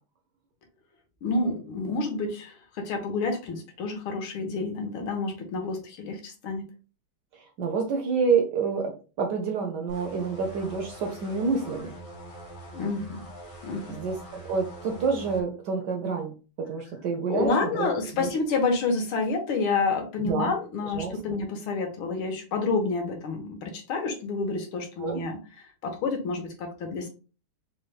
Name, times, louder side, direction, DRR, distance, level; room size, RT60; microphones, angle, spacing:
voice 1, 1.2-6.6 12.7-13.2 13.6-14.0 17.3-25.4 25.8-27.1, left 3 dB, 75° left, 3 dB, 1.7 m, -29 dB
voice 2, 7.3-12.0 13.9-17.9 18.2-18.3 20.2-20.5 21.0-21.2 25.0-25.2, right 5 dB, 75° right, 3 dB, 1.0 m, -28 dB
sound 1, 9.9-15.4, right 1 dB, 55° left, 0.3 m, -44 dB
4.4 x 2.2 x 3.2 m, 0.35 s
omnidirectional pair, 2.4 m